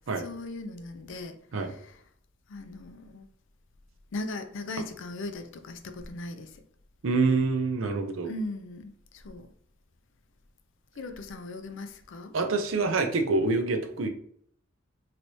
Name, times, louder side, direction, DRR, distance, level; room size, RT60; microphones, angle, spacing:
voice 1, 0.2-1.4 1.7-2.0 2.5-3.3 4.1-6.5 8.3-9.5 11.0-12.3, left 2 dB, 65° left, 8 dB, 0.4 m, -38 dB
voice 2, 7.0-8.3 12.3-14.1, right 3 dB, 70° right, 5 dB, 0.5 m, -26 dB
3.1 x 2.9 x 2.7 m, 0.65 s
head